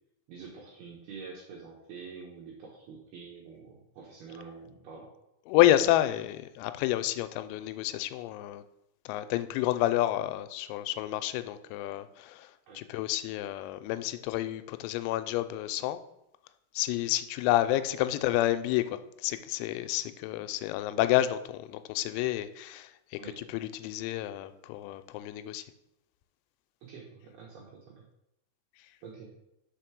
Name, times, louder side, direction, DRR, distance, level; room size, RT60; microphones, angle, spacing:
voice 1, 0.3-5.1 12.7-12.8 23.2-23.4 26.8-28.1 29.0-29.3, right 5 dB, 75° right, -2 dB, 2.4 m, -46 dB
voice 2, 5.5-8.6 9.1-16.0 16.7-25.6, left 14 dB, 90° left, 11 dB, 3.3 m, -29 dB
6.4 x 5.2 x 6.0 m, 0.85 s
omnidirectional pair, 5.9 m